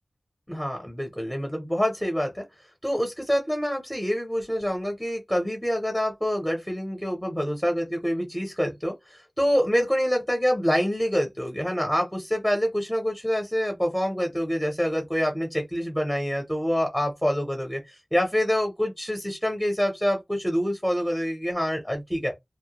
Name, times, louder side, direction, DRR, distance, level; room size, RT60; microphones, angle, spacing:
voice 1, 0.5-2.4 2.8-22.3, equal, 5° left, 0.8 m, -26 dB
2.1 x 2.1 x 2.9 m
wide cardioid pair, 65°, 0 cm